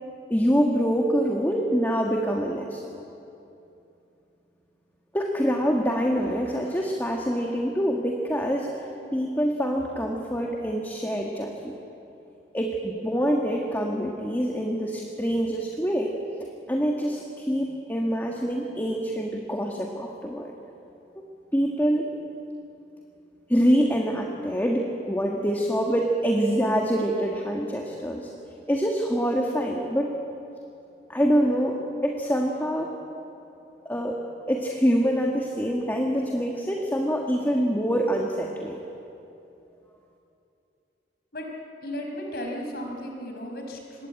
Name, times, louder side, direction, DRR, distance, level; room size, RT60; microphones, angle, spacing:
voice 1, 0.3-2.9 5.1-8.7 9.1-11.7 12.5-16.1 16.7-20.5 21.5-22.1 23.5-28.3 28.7-30.1 31.1-32.9 33.8-34.2 34.5-38.8, equal, 10° left, 0 dB, 1.7 m, -25 dB
voice 2, 41.8-44.1, equal, 60° left, 1 dB, 5.4 m, -35 dB
25.5 x 21.5 x 8.9 m, 2.8 s
head